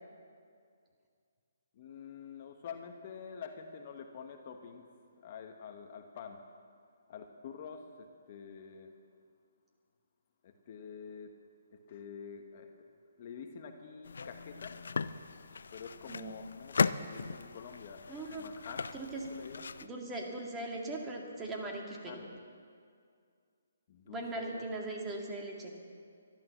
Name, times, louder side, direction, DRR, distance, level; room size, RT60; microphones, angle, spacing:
voice 1, 1.7-4.9 5.2-6.4 7.1-8.9 10.4-11.3 11.7-12.7 13.2-14.8 15.7-19.8 22.0-22.4 23.9-24.7, left 6 dB, 40° left, 5 dB, 1.1 m, -47 dB
sound 1, 14.0-19.9, left 5 dB, 70° left, 0.5 m, -37 dB
voice 2, 18.1-18.4 18.9-19.2 19.8-22.2 24.1-25.8, right 2 dB, 15° right, -1 dB, 2.1 m, -39 dB
13.0 x 12.0 x 7.2 m, 2.2 s
hypercardioid pair, 150°, 0 cm